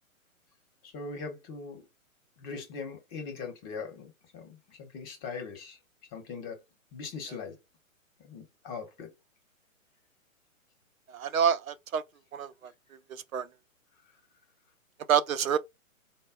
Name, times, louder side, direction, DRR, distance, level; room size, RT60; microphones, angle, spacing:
voice 1, 0.8-1.8 2.4-5.8 6.1-6.6 6.9-7.6 8.2-9.1, left 5 dB, 20° left, 1.1 m, -40 dB
voice 2, 11.1-12.0 12.3-12.7 13.1-13.5 15.1-15.6, right 8 dB, 75° right, 0.6 m, -27 dB
4.0 x 2.2 x 3.7 m
hypercardioid pair, 130°, 42 cm